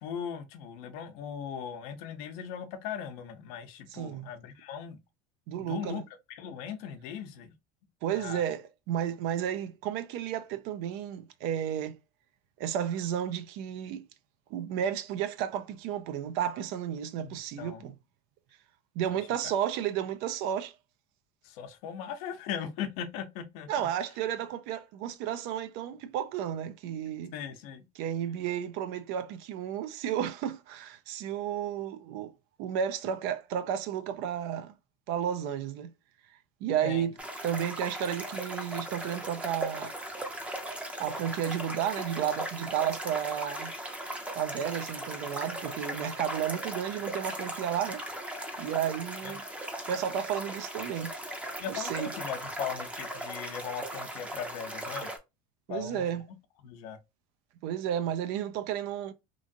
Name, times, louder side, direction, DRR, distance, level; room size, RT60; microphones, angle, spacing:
voice 1, 0.0-5.0 5.6-6.0 6.3-7.5 8.1-8.4 17.2-17.8 19.9-20.0 21.4-23.9 27.3-27.8 36.8-37.1 49.2-49.4 51.6-55.1 55.7-56.1 56.6-57.0, left 8 dB, 75° left, 0.7 m, -39 dB
voice 2, 3.9-4.3 5.5-6.0 8.0-12.0 12.6-14.0 14.5-18.0 19.0-20.7 23.7-27.3 28.0-32.3 32.6-34.7 35.1-35.9 36.6-37.1 37.4-39.9 41.0-43.7 44.3-48.1 48.6-49.4 49.9-51.1 51.7-52.1 55.7-56.3 57.6-59.1, right 9 dB, 65° right, 0.5 m, -32 dB
sound 1, 37.2-55.2, right 1 dB, 5° right, 0.6 m, -38 dB
3.0 x 2.5 x 2.6 m
supercardioid pair, 130°, 18 cm